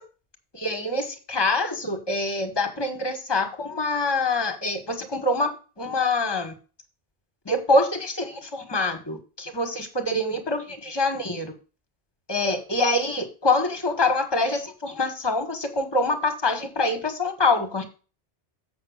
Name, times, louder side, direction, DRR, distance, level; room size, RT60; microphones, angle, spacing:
voice 1, 0.5-5.5 5.8-6.5 7.4-11.5 12.3-17.8, left 2 dB, 25° left, 6 dB, 1.7 m, -25 dB
7.6 x 5.9 x 6.5 m, 0.34 s
omnidirectional pair, 1.1 m